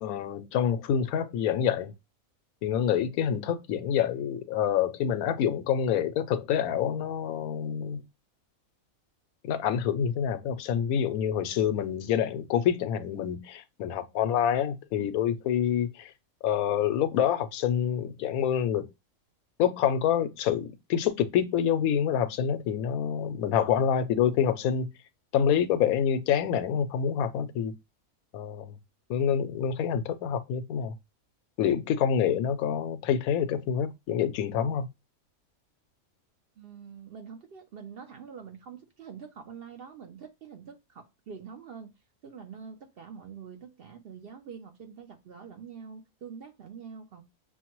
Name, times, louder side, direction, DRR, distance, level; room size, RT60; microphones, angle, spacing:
voice 1, 0.0-1.9 2.6-8.0 9.4-16.1 16.4-18.9 19.6-24.9 25.3-27.7 28.3-28.7 29.1-30.9 31.6-34.9, left 8 dB, 90° left, 1.0 m, -27 dB
voice 2, 36.6-41.9 42.2-47.2, right 6 dB, 55° right, 0.7 m, -45 dB
6.3 x 2.1 x 2.9 m
omnidirectional pair, 1.5 m